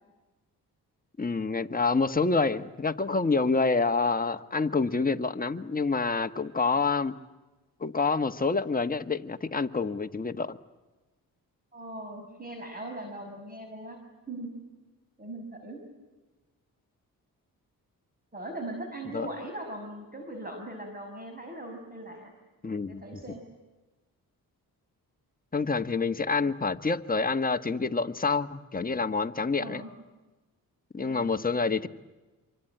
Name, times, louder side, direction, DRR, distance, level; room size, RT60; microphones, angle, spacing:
voice 1, 1.2-7.1 7.8-10.6 19.1-19.3 22.6-23.0 25.5-29.8 30.9-31.9, left 4 dB, 25° left, 7 dB, 1.4 m, -27 dB
voice 2, 11.7-14.0 14.3-14.5 15.2-15.8 18.3-22.3 22.9-23.4 26.3-26.5 29.6-29.9 31.0-31.4, right 1 dB, 25° right, 3 dB, 6.0 m, -40 dB
26.5 x 24.0 x 9.2 m, 1.2 s
cardioid pair, 70°, 36 cm